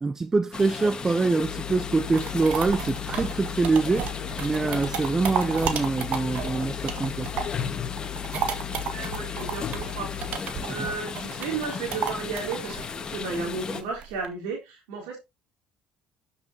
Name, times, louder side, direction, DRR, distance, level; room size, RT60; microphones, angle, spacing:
voice 1, 0.0-4.1 4.4-7.3 10.7-10.8, right 3 dB, 20° right, 0.4 m, -25 dB
sound 1, 0.5-13.8, left 6 dB, 35° left, 1.5 m, -35 dB
sound 2, 1.4-10.4, left 17 dB, 80° left, 0.7 m, -38 dB
sound 3, 1.8-7.7 8.0-14.3, right 7 dB, 60° right, 1.8 m, -33 dB
voice 2, 8.8-12.8 13.1-15.2, right 4 dB, 90° right, 3.9 m, -34 dB
12.5 x 7.3 x 2.8 m
supercardioid pair, 95°, 2 cm